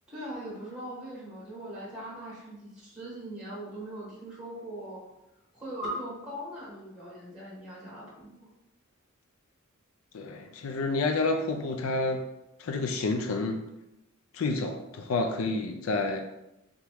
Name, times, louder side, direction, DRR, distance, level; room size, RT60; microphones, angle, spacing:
voice 1, 0.1-5.0 5.5-8.5, right 1 dB, 5° right, -6 dB, 1.3 m, -40 dB
voice 2, 10.1-12.2 12.6-13.6 14.3-16.2, left 3 dB, 70° left, 4 dB, 0.4 m, -29 dB
3.6 x 3.0 x 3.4 m, 0.90 s
head